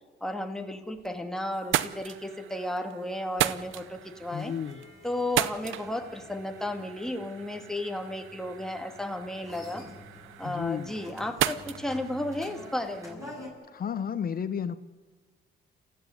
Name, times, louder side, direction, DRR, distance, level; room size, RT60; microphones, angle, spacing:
voice 1, 0.2-4.5 5.0-9.9 10.4-13.2, left 1 dB, ahead, 4 dB, 2.3 m, -34 dB
sound 1, 0.7-1.2 1.5-13.1, right 13 dB, 85° right, 0.7 m, -36 dB
sound 2, 3.5-13.5, left 2 dB, 15° right, 7.8 m, -49 dB
voice 2, 4.3-4.8 10.4-10.9 13.7-14.8, left 7 dB, 50° left, 13 dB, 0.9 m, -32 dB
28.0 x 15.0 x 9.7 m, 1.5 s
cardioid pair, 90°, 20 cm